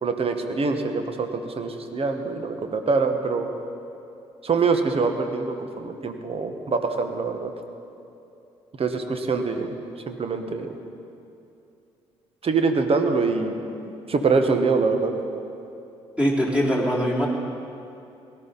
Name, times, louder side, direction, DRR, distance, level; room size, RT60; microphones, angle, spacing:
voice 1, 0.0-3.5 4.4-7.5 8.8-9.7 10.1-10.8 12.4-13.6 13.8-15.1, right 4 dB, 40° right, 6 dB, 1.4 m, -24 dB
voice 2, 16.2-17.3, equal, 5° right, -3 dB, 3.7 m, -22 dB
18.0 x 12.0 x 4.2 m, 2.7 s
hypercardioid pair, 45°, 15 cm